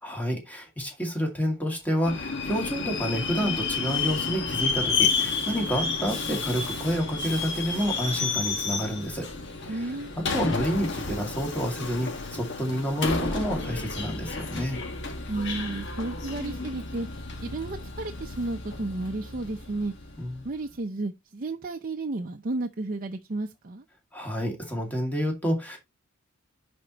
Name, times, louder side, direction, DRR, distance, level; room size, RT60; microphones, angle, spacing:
voice 1, 0.0-9.3 9.7-14.8 20.2-20.5 24.1-25.8, equal, 10° left, 2.1 m, -29 dB
Subway metro underground, 2.0-20.5, left 4 dB, 55° left, 1.5 m, -31 dB
voice 2, 9.7-10.1 15.3-17.1 17.4-19.9 20.4-23.8, right 2 dB, 40° right, 0.6 m, -32 dB
10.5 x 4.3 x 2.9 m
head